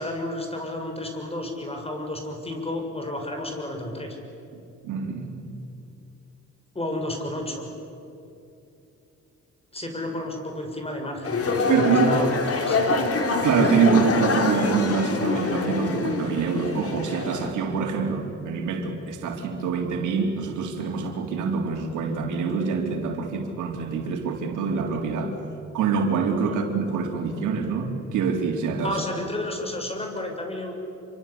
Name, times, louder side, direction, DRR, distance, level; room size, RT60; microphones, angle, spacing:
voice 1, 0.0-4.2 6.7-7.7 9.7-13.1 26.5-26.6 28.8-30.7, left 1 dB, 20° left, 3 dB, 6.7 m, -32 dB
voice 2, 4.8-5.5 11.6-12.2 13.4-25.3 25.7-29.0, right 5 dB, 80° right, 3 dB, 3.8 m, -25 dB
sound 1, 11.2-17.5, left 3 dB, 50° left, 3.8 m, -25 dB
27.5 x 24.5 x 8.6 m, 2.8 s
cardioid pair, 90°, 30 cm